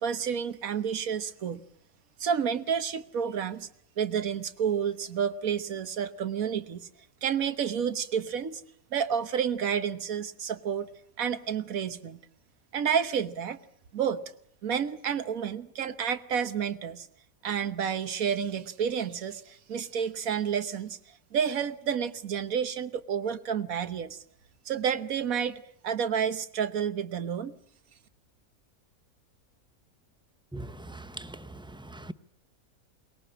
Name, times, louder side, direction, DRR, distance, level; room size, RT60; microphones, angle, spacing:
voice 1, 0.0-1.6 2.2-3.7 4.0-6.9 7.2-8.6 8.9-10.9 11.2-12.2 12.7-13.6 13.9-14.2 14.6-17.1 17.4-24.2 24.6-27.5, right 7 dB, 75° right, 1.6 m, -30 dB
voice 2, 30.5-31.4 31.9-32.1, right 1 dB, 5° right, 0.5 m, -40 dB
22.5 x 20.0 x 8.7 m
omnidirectional pair, 1.5 m